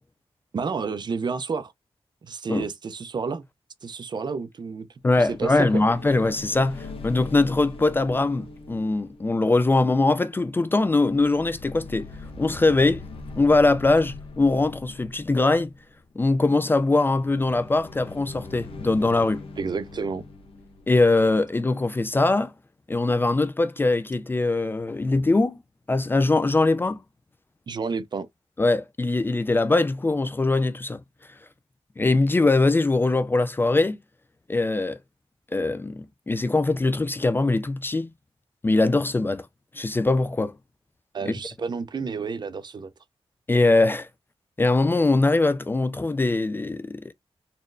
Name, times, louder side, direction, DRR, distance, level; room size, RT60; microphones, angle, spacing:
voice 1, 0.5-1.7 2.2-3.5 3.8-4.9 5.2-5.8 19.6-20.2 27.7-28.3 41.1-42.9, right 5 dB, 45° right, 0.5 m, -30 dB
voice 2, 5.0-12.1 12.4-13.0 13.4-15.7 16.2-19.4 20.9-22.5 22.9-25.6 25.9-27.0 28.6-31.0 32.0-34.0 34.5-35.0 35.5-38.1 38.6-39.5 39.7-40.5 41.3-41.4 43.5-44.1 44.6-47.1, left 2 dB, 20° left, 0.3 m, -22 dB
sound 1, 5.1-10.4 10.7-15.9 16.9-21.7, left 3 dB, 65° left, 1.0 m, -42 dB
4.2 x 3.0 x 2.5 m
wide cardioid pair, 145°, 10 cm